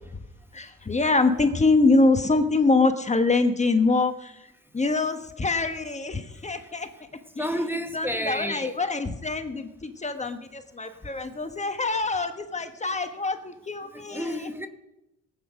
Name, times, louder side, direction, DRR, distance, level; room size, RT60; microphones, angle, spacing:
voice 1, 0.5-4.5 4.7-6.9 7.4-7.5 7.9-14.5, left 3 dB, 25° left, 1.2 m, -24 dB
voice 2, 7.4-8.7 13.9-14.7, equal, 5° right, 1.1 m, -30 dB
18.5 x 8.4 x 6.3 m
cardioid pair, 90°, 30 cm